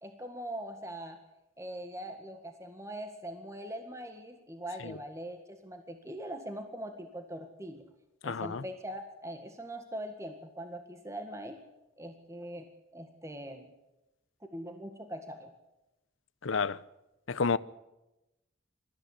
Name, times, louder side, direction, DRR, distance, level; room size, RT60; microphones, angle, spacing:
voice 1, 0.0-1.2 1.6-7.8 8.2-11.6 12.0-13.7 14.5-15.5, right 1 dB, 15° right, 1.8 m, -42 dB
voice 2, 8.2-8.6 16.4-16.8 17.3-17.6, left 5 dB, 80° left, 0.7 m, -30 dB
22.5 x 14.5 x 9.9 m
head